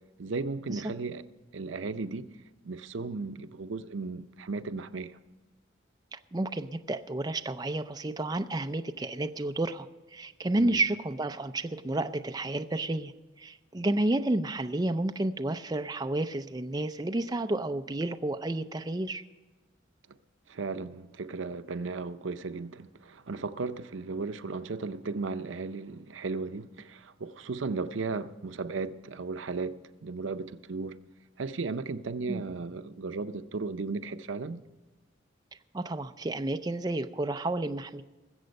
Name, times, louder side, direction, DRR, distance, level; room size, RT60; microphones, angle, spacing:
voice 1, 0.2-1.2 1.5-2.3 2.6-5.2 10.6-10.8 20.5-31.0 31.4-34.6, right 4 dB, 85° right, 0.6 m, -35 dB
voice 2, 6.1-9.9 10.1-13.1 13.4-19.2 32.3-32.4 35.7-38.0, right 2 dB, 20° right, 0.4 m, -31 dB
20.5 x 7.8 x 5.3 m
head